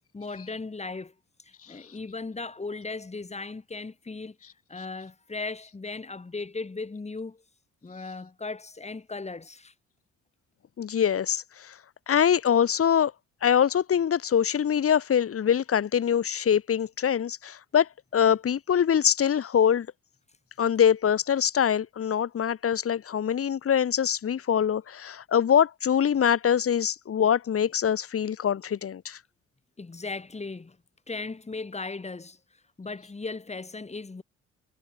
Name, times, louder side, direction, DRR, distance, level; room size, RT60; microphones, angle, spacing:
voice 1, 0.1-1.1 1.4-4.4 4.7-7.4 7.8-9.7 29.8-30.8 31.1-32.4 32.8-34.2, left 3 dB, 20° left, 2.8 m, -37 dB
voice 2, 10.8-11.7 12.1-13.1 13.4-19.9 20.6-29.2, left 8 dB, 50° left, 1.9 m, -24 dB
cardioid pair, 90°, 30 cm